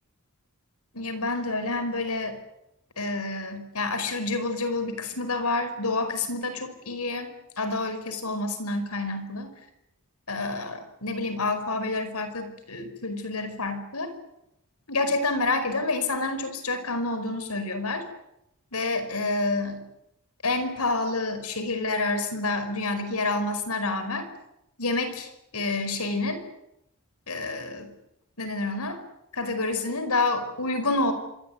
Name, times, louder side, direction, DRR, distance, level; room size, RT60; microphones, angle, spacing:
voice 1, 0.9-2.4 3.0-9.5 10.3-14.1 14.9-18.0 18.7-19.8 20.4-24.3 24.8-26.4 27.3-27.9 28.4-29.0 29.3-31.1, left 2 dB, 80° left, 10 dB, 5.2 m, -28 dB
27.0 x 23.0 x 9.5 m, 0.85 s
head